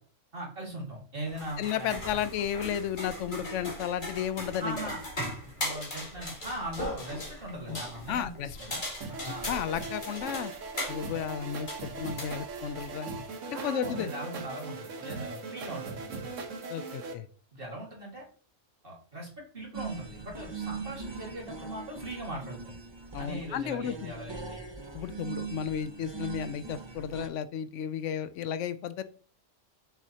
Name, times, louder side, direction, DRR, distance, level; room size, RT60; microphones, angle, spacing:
voice 1, 0.3-2.2 4.6-5.0 5.6-8.8 9.2-9.5 13.5-16.3 17.5-18.2 18.8-22.7 23.2-24.6, right 1 dB, 45° right, -2 dB, 2.1 m, -40 dB
sound 1, 1.3-12.9, left 1 dB, 40° left, 2.0 m, -39 dB
voice 2, 1.6-4.8 8.1-8.6 9.3-10.5 10.9-13.1 13.5-14.1 16.7-17.3 23.1-24.1 24.9-29.0, left 9 dB, 80° left, 13 dB, 0.9 m, -33 dB
sound 2, 9.0-17.1, right 4 dB, 85° right, 1.3 m, -39 dB
sound 3, 19.7-27.3, right 5 dB, 25° right, 0.7 m, -41 dB
6.4 x 6.3 x 2.8 m, 0.42 s
omnidirectional pair, 1.3 m